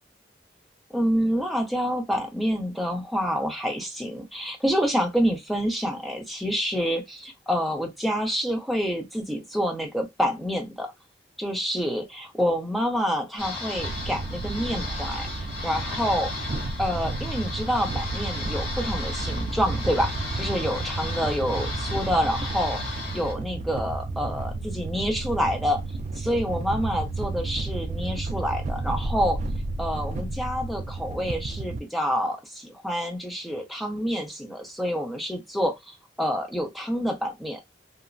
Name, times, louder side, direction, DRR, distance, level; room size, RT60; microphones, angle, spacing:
voice 1, 0.9-10.9 11.4-16.3 16.8-25.8 26.2-29.4 29.8-35.8 36.2-37.6, equal, ahead, 0.6 m, -27 dB
sound 1, 13.4-23.3, left 2 dB, 35° left, 1.4 m, -35 dB
sound 2, 13.8-31.8, right 3 dB, 40° right, 0.3 m, -32 dB
2.9 x 2.2 x 2.5 m
head